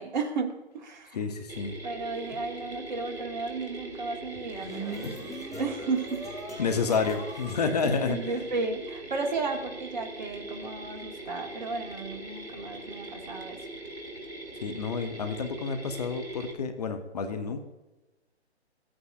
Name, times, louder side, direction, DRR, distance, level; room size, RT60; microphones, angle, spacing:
voice 1, 0.0-1.2 1.8-6.2 6.5-6.6 7.8-13.6, right 4 dB, 40° right, 5 dB, 1.2 m, -34 dB
voice 2, 1.1-1.7 2.3-2.4 5.0-5.1 6.6-8.2 14.6-17.6, left 5 dB, 35° left, 7 dB, 0.7 m, -29 dB
Mechanisms, 1.5-16.5, right 1 dB, 70° right, 2.1 m, -41 dB
sound 1, 4.3-8.6, right 1 dB, ahead, 1.0 m, -41 dB
14.0 x 8.7 x 2.4 m, 1.1 s
figure-of-eight pair, 135°, 34 cm